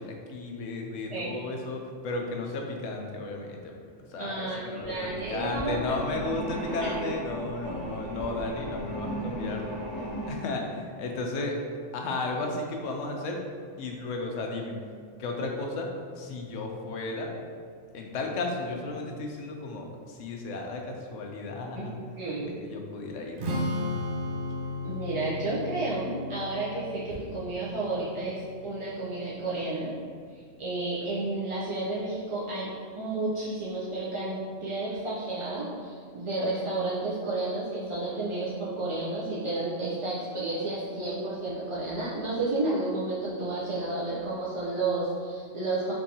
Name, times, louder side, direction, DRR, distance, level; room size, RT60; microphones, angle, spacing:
voice 1, 0.0-3.7 4.1-9.8 10.3-11.6 11.9-13.4 13.8-14.8 15.2-17.3 17.9-22.0 22.6-23.4, left 2 dB, 75° left, 1 dB, 0.9 m, -34 dB
voice 2, 4.2-6.0 6.8-6.9 21.7-21.8 22.2-22.6 24.8-29.9 30.6-32.7 32.9-45.9, right 2 dB, 50° right, -8 dB, 0.4 m, -31 dB
sound 1, 4.8-10.4, right 1 dB, 85° right, 1.6 m, -36 dB
Strum, 23.4-29.7, left 2 dB, 65° right, 0.8 m, -35 dB
4.4 x 2.7 x 2.7 m, 2.1 s
omnidirectional pair, 1.3 m